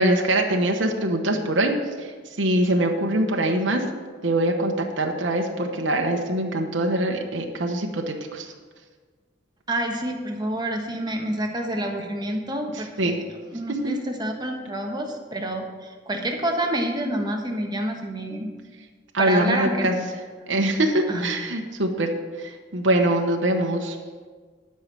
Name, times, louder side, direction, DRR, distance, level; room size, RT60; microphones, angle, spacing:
voice 1, 0.0-2.1 2.4-3.8 4.2-8.5 13.0-13.2 13.7-13.9 19.1-20.0 20.5-24.0, right 1 dB, 70° right, 2 dB, 1.0 m, -23 dB
voice 2, 9.7-13.2 13.5-18.5 19.2-19.9 21.1-21.2, right 1 dB, 20° right, 2 dB, 1.3 m, -28 dB
11.5 x 5.6 x 7.4 m, 1.5 s
head